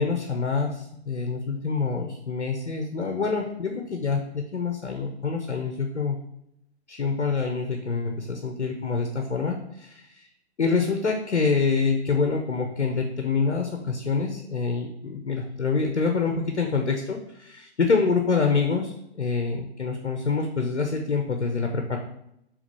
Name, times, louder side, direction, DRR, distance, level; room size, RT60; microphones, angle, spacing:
voice 1, 0.0-6.2 6.9-10.2 10.6-22.0, left 4 dB, 80° left, 3 dB, 1.0 m, -26 dB
5.0 x 3.5 x 5.4 m, 0.79 s
figure-of-eight pair, 125°, 34 cm